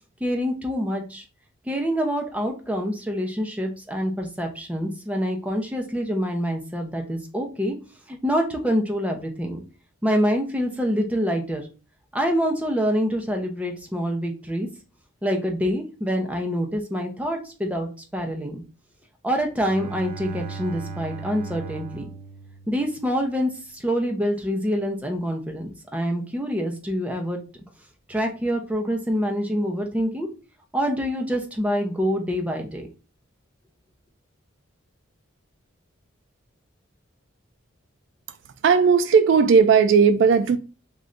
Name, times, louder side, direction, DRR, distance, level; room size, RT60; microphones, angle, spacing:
voice 1, 0.2-1.2 1.7-7.8 8.1-9.6 10.0-11.7 12.1-14.7 15.2-18.6 19.2-22.1 22.7-27.4 28.1-30.3 30.7-32.9, equal, 5° right, 0.6 m, -26 dB
Bowed string instrument, 19.5-23.3, right 4 dB, 40° right, 0.7 m, -37 dB
voice 2, 38.6-40.6, right 6 dB, 60° right, 0.3 m, -16 dB
3.8 x 2.6 x 3.2 m
head